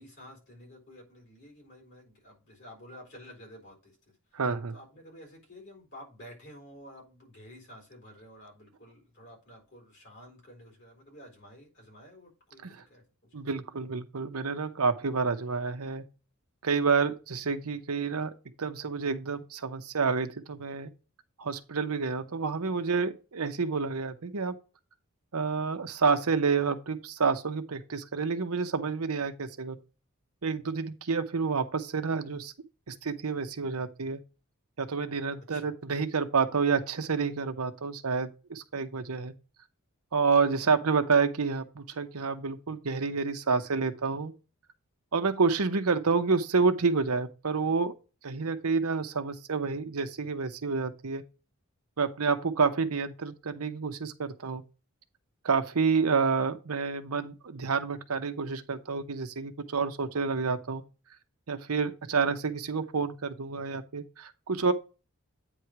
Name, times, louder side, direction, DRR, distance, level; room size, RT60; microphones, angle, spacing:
voice 1, 0.0-4.0 4.3-4.4 4.7-13.3 35.5-35.7, equal, 50° left, 4.3 m, -51 dB
voice 2, 4.3-4.7 12.6-12.8 13.3-16.0 16.6-18.3 18.6-20.9 21.4-24.6 25.3-29.8 30.4-32.5 32.9-34.2 34.8-39.3 40.1-44.3 45.1-47.9 48.2-51.2 52.0-54.6 55.4-60.8 61.5-64.7, right 5 dB, 85° right, 0.8 m, -29 dB
9.0 x 3.2 x 5.8 m
head